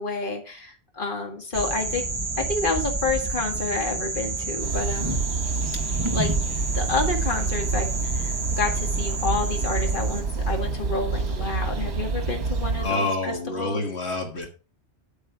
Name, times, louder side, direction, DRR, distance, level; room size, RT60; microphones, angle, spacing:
voice 1, 0.0-2.0 2.4-5.2 6.1-6.3 6.7-13.8, left 3 dB, 50° left, 2 dB, 2.1 m, -29 dB
sound 1, 1.5-10.2, right 3 dB, 25° right, 1.3 m, -30 dB
sound 2, 4.6-12.9, right 4 dB, 75° right, 1.4 m, -27 dB
voice 2, 12.8-14.5, left 2 dB, 75° left, 2 dB, 1.9 m, -27 dB
8.7 x 7.9 x 4.6 m, 0.34 s
omnidirectional pair, 1.1 m